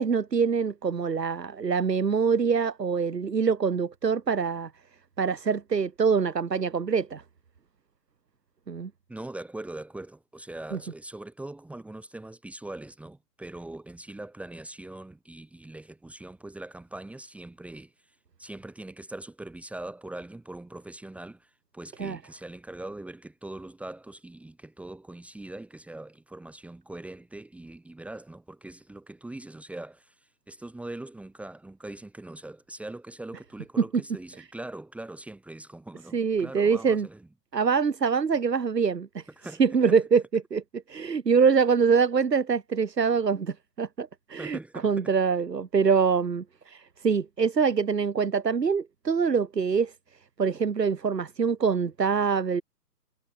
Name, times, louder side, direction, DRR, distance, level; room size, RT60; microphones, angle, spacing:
voice 1, 0.0-4.7 5.2-7.2 8.7-8.9 22.0-22.2 36.1-37.1 37.5-39.2 39.6-49.9 50.4-52.6, right 6 dB, 80° right, 1.8 m, -24 dB
voice 2, 9.1-37.3 39.4-39.6 39.9-40.0 44.4-45.1, right 2 dB, 5° right, 3.5 m, -42 dB
figure-of-eight pair, 135°, 48 cm